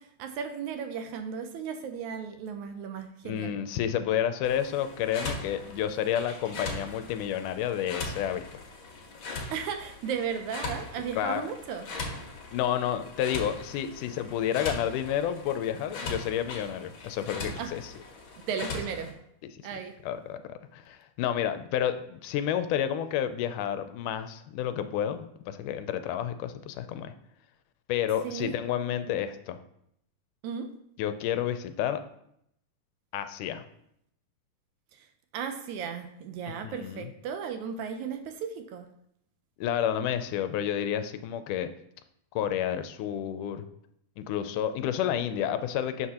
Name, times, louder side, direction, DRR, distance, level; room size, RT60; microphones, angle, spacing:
voice 1, 0.0-3.6 9.5-11.9 17.6-17.7 18.5-19.1 19.6-19.9 28.2-28.5 30.4-30.7 34.9-35.1 35.3-38.9, right 7 dB, 75° right, 7 dB, 1.9 m, -35 dB
voice 2, 3.2-8.5 11.2-11.4 12.5-17.8 19.5-19.6 20.0-27.1 27.9-29.6 31.0-32.0 33.1-33.6 36.6-37.1 39.6-41.7 42.4-43.6 44.2-46.1, left 10 dB, 80° left, 10 dB, 2.1 m, -30 dB
sound 1, 4.4-19.1, left 3 dB, 50° left, 1.7 m, -40 dB
11.0 x 6.2 x 2.9 m, 0.74 s
omnidirectional pair, 3.7 m